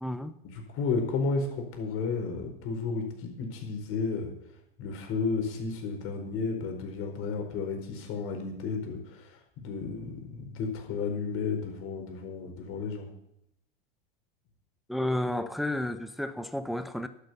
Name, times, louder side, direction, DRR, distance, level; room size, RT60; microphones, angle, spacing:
voice 1, 0.0-0.4 14.9-17.1, left 1 dB, ahead, 0.9 m, -31 dB
voice 2, 0.5-4.3 4.8-13.1, left 4 dB, 45° left, 4.6 m, -32 dB
11.5 x 10.5 x 8.2 m
hypercardioid pair, 90°, 31 cm